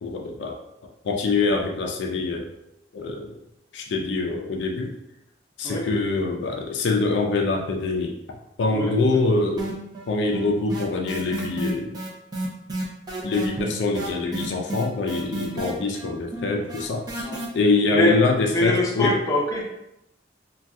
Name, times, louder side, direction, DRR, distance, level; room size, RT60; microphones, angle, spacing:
voice 1, 0.0-0.5 0.8-2.5 2.9-3.4 3.7-4.9 5.6-8.2 8.6-9.7 10.1-12.0 13.2-17.3 17.5-19.2, left 3 dB, 80° left, 1 dB, 0.4 m, -24 dB
voice 2, 8.7-9.2 16.0-16.1 17.2-17.4 17.9-18.2 18.5-19.6, left 1 dB, 20° left, -5 dB, 0.6 m, -24 dB
sound 1, 9.6-10.1 10.3-17.5, right 2 dB, 25° right, 0.5 m, -31 dB
2.5 x 2.2 x 3.4 m, 0.84 s
head